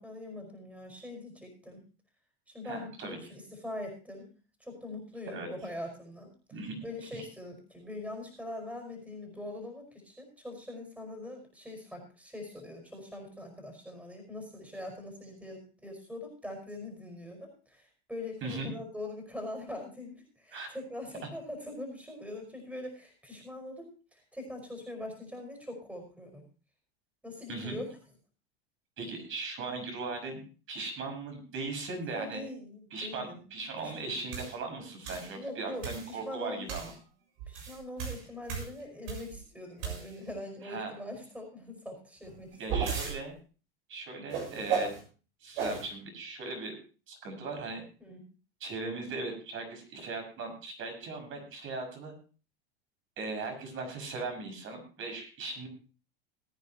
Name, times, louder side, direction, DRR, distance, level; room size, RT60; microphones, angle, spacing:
voice 1, 0.0-1.8 2.5-4.3 4.6-6.6 6.8-26.5 27.2-27.9 32.1-33.4 33.8-33.9 35.3-36.9 37.5-42.9 44.1-44.3 48.0-48.2, left 1 dB, 5° right, 4 dB, 5.2 m, -42 dB
voice 2, 2.6-3.2 5.3-5.5 6.5-6.8 7.1-7.2 18.4-18.7 20.5-20.7 21.2-21.3 27.5-27.8 29.0-30.4 30.7-32.4 32.9-36.9 40.6-40.9 42.6-43.3 43.9-44.9 45.4-46.8 47.1-47.8 48.6-52.2 53.2-55.7, right 3 dB, 40° right, 5 dB, 6.0 m, -38 dB
sound 1, 34.3-34.5 35.1-35.3 35.8-36.1 36.7-36.9 37.4-39.4 39.8-40.3 42.2-43.2 44.3-45.0 45.6-45.9, right 6 dB, 65° right, 7.2 m, -34 dB
21.0 x 9.5 x 2.9 m, 0.36 s
hypercardioid pair, 100°, 30 cm